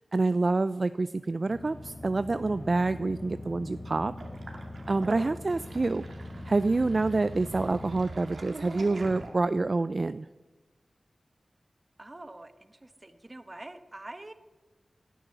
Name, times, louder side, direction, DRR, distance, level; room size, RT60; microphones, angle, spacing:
voice 1, 0.1-4.1 4.9-6.1 6.5-10.3, right 3 dB, 55° right, 13 dB, 0.4 m, -27 dB
sound 1, 1.4-8.0, left 1 dB, 40° left, 6.2 m, -42 dB
Sink (filling or washing), 4.2-9.7, right 2 dB, 80° right, 2.1 m, -44 dB
voice 2, 12.0-14.3, right 2 dB, 35° right, 10 dB, 1.3 m, -45 dB
17.5 x 10.0 x 6.8 m, 1.2 s
cardioid pair, 45°, 0 cm